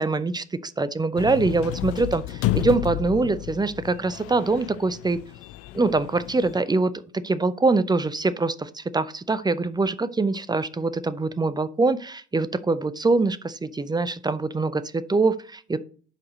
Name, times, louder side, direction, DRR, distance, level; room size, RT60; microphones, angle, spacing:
voice 1, 0.0-5.2 5.7-6.9 7.2-15.8, right 3 dB, 10° right, 15 dB, 0.6 m, -24 dB
sound 1, 1.1-6.6, left 16 dB, 45° left, 0.5 m, -31 dB
11.0 x 4.9 x 3.9 m, 0.41 s
figure-of-eight pair, 65°, 35 cm